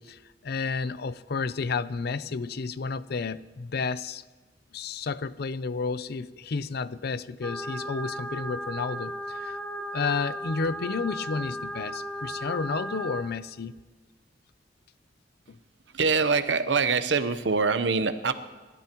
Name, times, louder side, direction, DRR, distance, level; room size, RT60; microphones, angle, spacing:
voice 1, 0.0-4.2 4.7-9.6 9.9-13.8 15.5-15.6, left 4 dB, 60° left, 15 dB, 0.5 m, -31 dB
sound 1, 7.4-13.2, equal, 5° left, 1.1 m, -35 dB
voice 2, 15.9-18.3, right 4 dB, 75° right, 10 dB, 0.9 m, -24 dB
29.5 x 13.5 x 3.0 m, 1.3 s
head